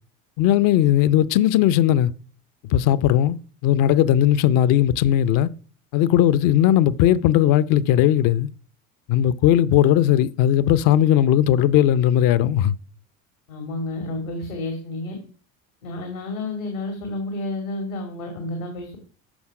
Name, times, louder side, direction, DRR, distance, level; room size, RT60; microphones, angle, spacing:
voice 1, 0.4-2.1 2.7-5.5 5.9-8.5 9.1-12.7, left 11 dB, 55° left, 0.7 m, -18 dB
voice 2, 13.5-15.2 15.8-19.0, left 2 dB, 85° left, 2.5 m, -30 dB
13.5 x 5.7 x 4.9 m
hypercardioid pair, 75°, 40 cm